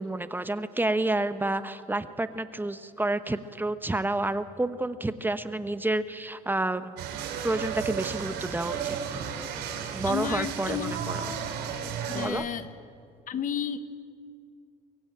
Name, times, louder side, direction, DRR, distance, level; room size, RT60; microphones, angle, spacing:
voice 1, 0.0-7.0 7.4-9.3 9.9-11.2 12.1-12.4, right 2 dB, 10° right, 11 dB, 1.0 m, -29 dB
sound 1, 7.0-12.3, right 7 dB, 85° right, 3.8 m, -34 dB
voice 2, 10.0-10.9 12.1-12.7 13.3-14.0, left 8 dB, 50° left, 12 dB, 1.3 m, -32 dB
23.5 x 23.0 x 9.0 m, 2.3 s
cardioid pair, 110°, 17 cm